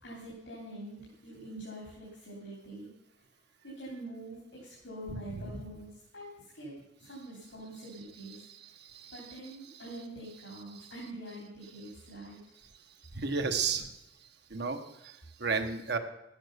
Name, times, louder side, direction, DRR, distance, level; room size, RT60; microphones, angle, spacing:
voice 1, 0.0-2.9 3.6-5.9 6.1-6.7 7.0-8.4 9.1-12.4, right 1 dB, 85° left, -4 dB, 3.5 m, -45 dB
voice 2, 5.1-5.5 8.2-9.8 10.7-10.9 13.1-13.9 14.5-16.0, right 5 dB, 65° right, 6 dB, 1.3 m, -35 dB
12.5 x 8.8 x 6.7 m, 0.88 s
head